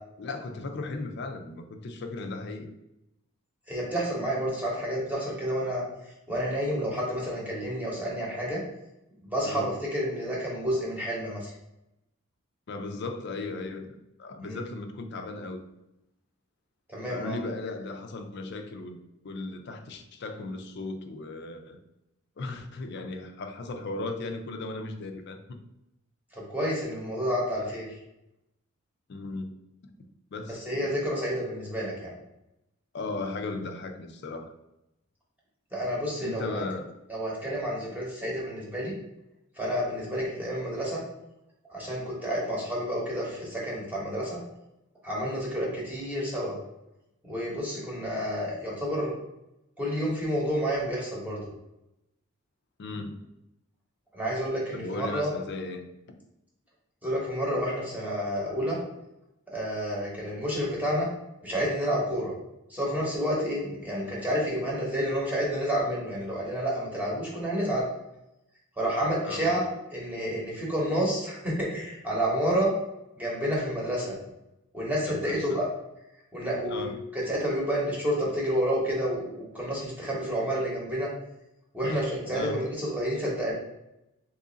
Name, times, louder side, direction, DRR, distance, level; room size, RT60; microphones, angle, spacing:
voice 1, 0.2-2.7 9.4-9.7 12.7-15.6 17.1-19.0 19.2-21.8 22.4-25.4 29.1-29.6 29.8-29.9 30.3-30.8 32.9-34.5 36.2-36.9 52.8-53.3 54.7-55.9 69.2-69.7 75.1-75.6 76.7-77.0 81.8-82.7, left 3 dB, 55° left, 6 dB, 0.4 m, -36 dB
voice 2, 3.7-5.8 6.3-8.6 9.2-11.5 14.4-14.6 16.9-17.4 26.5-27.9 30.5-32.1 35.7-36.6 37.1-38.9 39.6-41.0 41.7-44.4 45.0-46.5 47.2-49.1 49.8-51.4 54.1-55.3 57.0-58.8 59.5-61.1 61.4-62.3 62.7-67.8 68.8-69.6 69.9-72.7 73.2-74.2 74.7-75.7 76.3-81.1 81.7-83.5, equal, 10° right, -5 dB, 0.9 m, -29 dB
3.0 x 2.5 x 3.8 m, 0.88 s
head